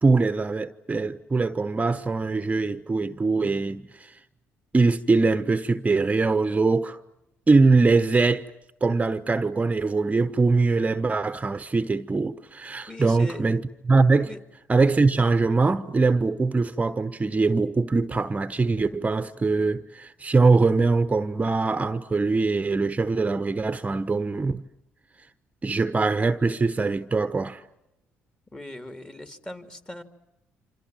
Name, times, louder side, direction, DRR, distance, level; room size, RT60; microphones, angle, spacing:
voice 1, 0.0-4.2 4.7-7.0 7.5-8.5 8.8-14.3 14.7-24.6 25.6-27.6, right 3 dB, 25° right, 1.0 m, -22 dB
voice 2, 12.9-13.4 14.2-14.4 28.5-30.0, left 1 dB, 15° left, 3.0 m, -39 dB
28.0 x 26.5 x 7.8 m
supercardioid pair, 65°, 5 cm